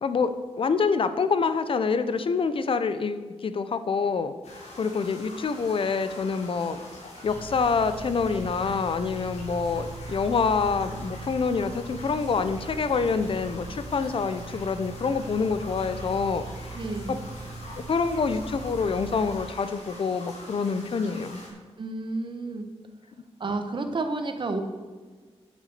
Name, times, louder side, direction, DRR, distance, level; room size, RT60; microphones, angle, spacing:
voice 1, 0.0-4.3 4.8-6.8 7.2-16.8 17.1-17.2 17.9-21.4, left 5 dB, 55° left, 11 dB, 0.7 m, -26 dB
sound 1, 4.4-21.5, left 2 dB, 85° left, 3.9 m, -45 dB
sound 2, 7.3-19.5, right 3 dB, 65° right, 0.9 m, -40 dB
voice 2, 16.7-17.2 21.8-22.7 23.4-24.6, right 3 dB, 45° right, 7 dB, 1.2 m, -30 dB
9.3 x 8.2 x 6.7 m, 1.5 s
wide cardioid pair, 120°, 11 cm